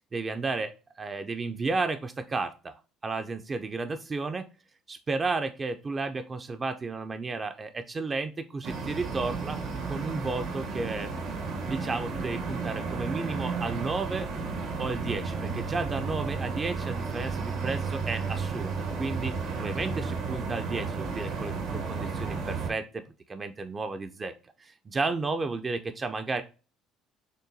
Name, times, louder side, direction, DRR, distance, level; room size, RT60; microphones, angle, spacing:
voice 1, 0.1-4.5 4.9-9.6 9.9-11.1 11.7-14.3 14.8-23.0 23.3-24.3 24.6-26.4, right 3 dB, 20° right, 8 dB, 0.3 m, -33 dB
sound 1, 8.6-22.7, right 4 dB, 80° right, 1.1 m, -33 dB
6.3 x 2.2 x 2.6 m, 0.35 s
cardioid pair, 135°, 0 cm